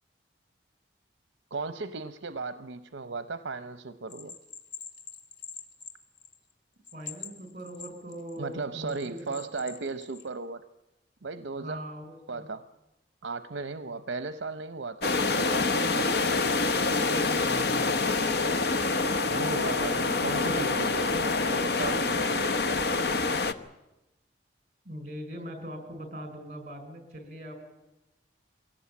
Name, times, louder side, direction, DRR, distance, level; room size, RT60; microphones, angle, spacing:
voice 1, 1.5-4.4 8.4-10.7 11.2-11.8 12.3-12.6 13.2-15.8 19.2-23.1, right 3 dB, 75° right, 12 dB, 0.7 m, -36 dB
Bell, 4.1-6.5 6.8-8.4 8.9-10.3, left 6 dB, 75° left, 2.5 m, -44 dB
voice 2, 6.9-9.4 11.5-12.5 17.0-17.9 24.8-27.7, equal, 40° right, 7 dB, 5.2 m, -41 dB
sound 1, 15.0-23.5, left 3 dB, 55° left, 1.0 m, -26 dB
22.5 x 17.5 x 8.6 m, 0.97 s
head